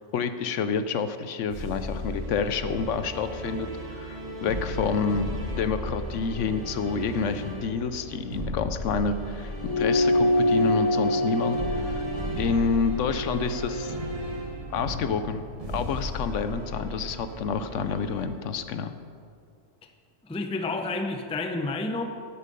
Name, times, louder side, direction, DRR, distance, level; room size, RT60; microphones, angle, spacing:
voice 1, 0.0-5.3 5.6-12.0 12.4-14.0 14.7-18.9, left 5 dB, 70° left, 10 dB, 0.9 m, -29 dB
sound 1, 1.5-18.3, equal, 25° right, 1.4 m, -35 dB
sound 2, 9.6-14.4, left 1 dB, 25° left, 1.1 m, -26 dB
voice 2, 20.2-22.0, left 2 dB, 10° left, 5 dB, 0.4 m, -30 dB
12.0 x 8.7 x 5.4 m, 2.3 s
omnidirectional pair, 1.4 m